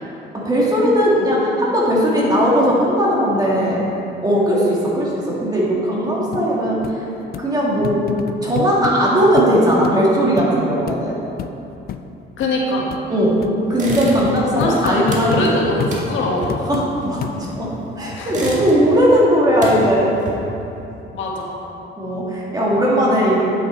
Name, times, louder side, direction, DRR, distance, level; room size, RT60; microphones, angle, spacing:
voice 1, 0.3-3.8 4.2-8.1 8.4-11.2 13.1-13.4 13.7-15.8 16.7-20.1 22.0-23.5, equal, 20° right, -5 dB, 1.9 m, -18 dB
sound 1, 6.3-6.4 6.8-6.9 7.3-7.5 7.8-9.0 9.4-9.5 9.8-9.9 10.4-10.5 10.9-11.0 11.4-11.5 11.9-12.0 12.4-12.5 12.9-13.0 13.4-13.5 13.9-15.5 15.8-16.0 16.5-16.9 17.2-17.7 18.2-18.3, left 9 dB, 50° left, 0.4 m, -28 dB
voice 2, 12.4-12.8 14.5-16.5 18.1-18.5 21.1-21.5, left 2 dB, 75° left, -2 dB, 1.4 m, -22 dB
sound 2, 13.7-14.5 14.7-17.7 18.1-19.0 19.3-20.7, right 1 dB, 35° right, 1.6 m, -29 dB
9.6 x 6.0 x 4.4 m, 2.9 s
cardioid pair, 120°, 20 cm